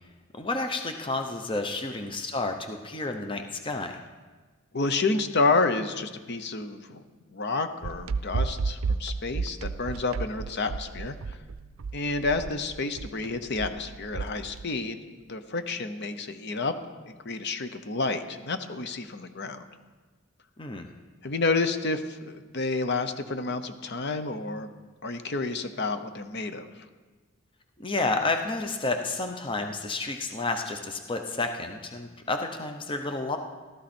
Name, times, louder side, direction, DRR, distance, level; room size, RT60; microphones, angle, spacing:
voice 1, 0.3-4.0 20.6-20.9 27.8-33.4, left 3 dB, 25° left, 5 dB, 0.8 m, -30 dB
voice 2, 4.7-7.0 7.3-11.2 11.9-15.0 15.3-16.7 17.1-19.6 21.2-24.7 25.0-26.7, left 3 dB, 55° left, 9 dB, 0.9 m, -29 dB
sound 1, 7.8-14.6, right 4 dB, 75° right, 0.5 m, -32 dB
15.5 x 13.0 x 4.4 m, 1.4 s
head